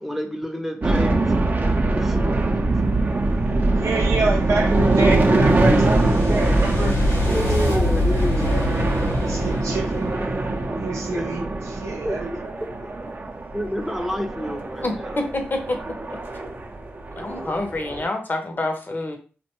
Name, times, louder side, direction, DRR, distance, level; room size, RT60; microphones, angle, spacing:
voice 1, 0.0-1.3 1.8-2.3 4.8-4.9 7.2-8.6 11.1-11.5 12.0-12.2 12.6-12.7 13.0-13.1 13.5-15.2, equal, 5° right, 5 dB, 0.6 m, -29 dB
sound 1, 0.8-18.1, right 2 dB, 40° right, 0.5 m, -23 dB
sound 2, 3.7-10.9, left 2 dB, 70° left, 0.9 m, -27 dB
voice 2, 3.8-7.0 7.6-8.8 9.2-10.2 10.7-12.5 12.8-13.0, right 3 dB, 90° right, 1 dB, 0.5 m, -28 dB
voice 3, 14.8-15.8 16.1-16.2 17.2-19.2, left 2 dB, 40° left, 4 dB, 0.7 m, -27 dB
2.6 x 2.2 x 2.9 m, 0.36 s
cardioid pair, 45°, 5 cm